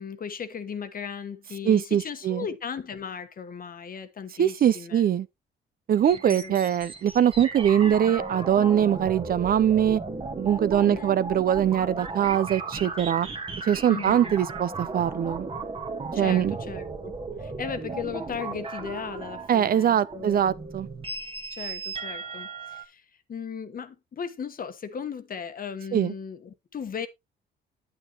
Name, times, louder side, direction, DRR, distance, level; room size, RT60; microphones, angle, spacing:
voice 1, 0.0-5.0 6.1-6.8 10.8-11.1 13.9-14.3 16.1-17.1 17.4-20.5 21.5-27.1, left 7 dB, 45° left, 1.2 m, -37 dB
voice 2, 1.6-2.4 4.4-5.3 5.9-10.0 10.4-13.3 13.6-15.5 16.1-16.5 19.5-20.9 25.9-26.1, right 9 dB, 50° right, 0.5 m, -22 dB
sound 1, 5.9-22.8, right 4 dB, 25° right, 1.4 m, -36 dB
8.9 x 8.8 x 2.9 m
cardioid pair, 90°, 20 cm